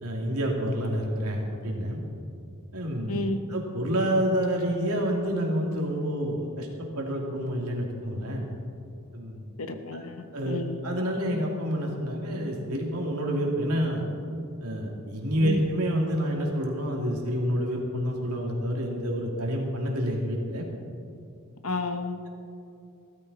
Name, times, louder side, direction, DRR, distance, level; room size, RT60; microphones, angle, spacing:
voice 1, 0.0-2.0 2.7-3.2 3.5-8.5 9.1-9.4 9.9-10.0 10.3-14.0 14.6-20.7, equal, 85° right, 0 dB, 2.6 m, -28 dB
voice 2, 3.1-3.4 9.6-10.8 15.4-15.6 21.6-22.2, left 2 dB, 65° left, 7 dB, 1.1 m, -31 dB
16.0 x 13.5 x 4.1 m, 2.6 s
head